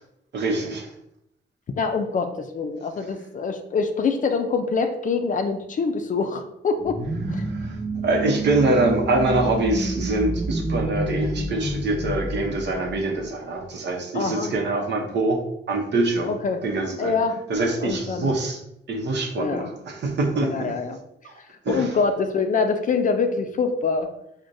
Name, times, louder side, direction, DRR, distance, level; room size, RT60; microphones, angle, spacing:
voice 1, 0.3-0.9 7.4-15.4 15.7-16.3 16.6-17.1 17.5-18.6 18.9-20.7 21.2-21.3 21.6-21.9, right 2 dB, 70° right, 1 dB, 0.7 m, -24 dB
voice 2, 1.8-7.0 7.3-7.4 14.1-14.5 16.2-16.6 17.0-17.4 17.8-18.3 19.4-19.7 20.4-21.0 21.7-24.1, left 4 dB, 45° left, 7 dB, 0.4 m, -25 dB
sound 1, 6.8-13.3, right 2 dB, 15° right, 1.1 m, -29 dB
6.1 x 2.1 x 2.6 m, 0.81 s
wide cardioid pair, 155°, 19 cm